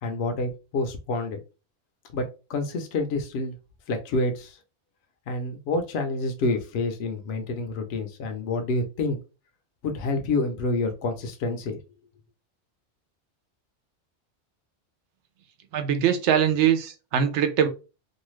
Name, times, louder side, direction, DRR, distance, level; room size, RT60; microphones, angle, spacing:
voice 1, 0.0-1.4 2.1-3.6 3.9-4.6 5.3-9.2 9.8-11.8, left 2 dB, 70° left, 5 dB, 0.8 m, -28 dB
voice 2, 15.7-17.7, right 8 dB, 90° right, 8 dB, 0.9 m, -22 dB
2.7 x 2.3 x 3.0 m, 0.31 s
omnidirectional pair, 1.1 m